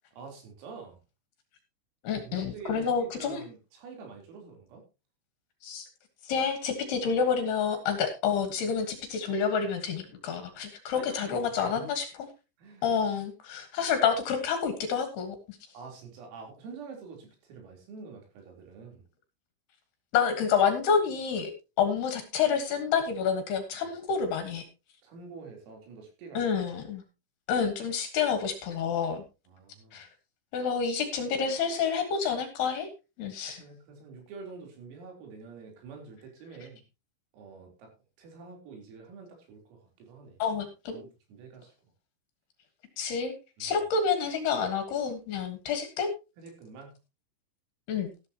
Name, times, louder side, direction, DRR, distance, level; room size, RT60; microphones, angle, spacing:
voice 1, 0.1-1.0 2.2-4.8 10.1-10.3 10.9-11.9 12.6-12.9 15.7-19.0 25.0-26.5 29.5-30.0 33.6-36.8 37.3-37.9 38.2-40.4 40.9-41.7 43.6-43.8 46.4-46.9, right 4 dB, 85° right, 3 dB, 6.4 m, -46 dB
voice 2, 2.0-3.4 5.6-5.9 6.3-12.1 12.8-15.6 20.1-21.5 21.8-24.6 26.3-27.0 27.5-29.2 29.9-30.1 30.5-32.9 33.2-33.6 40.4-41.0 43.0-43.3 43.6-46.1 47.9-48.1, left 6 dB, 65° left, 8 dB, 3.0 m, -28 dB
14.0 x 12.0 x 2.9 m, 0.28 s
omnidirectional pair, 5.9 m